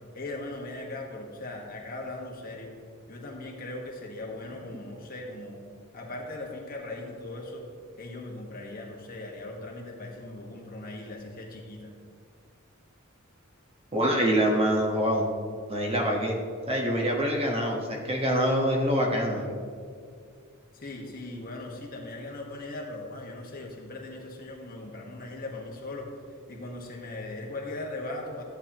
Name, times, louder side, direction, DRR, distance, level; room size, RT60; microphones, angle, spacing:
voice 1, 0.1-2.7 3.1-5.6 5.9-7.7 8.0-11.9 20.7-26.1 26.5-28.4, left 2 dB, 45° left, -1 dB, 1.5 m, -39 dB
voice 2, 13.9-15.3 15.7-16.3 16.7-19.5, equal, 30° right, 0 dB, 1.3 m, -25 dB
13.5 x 8.7 x 3.0 m, 2.2 s
head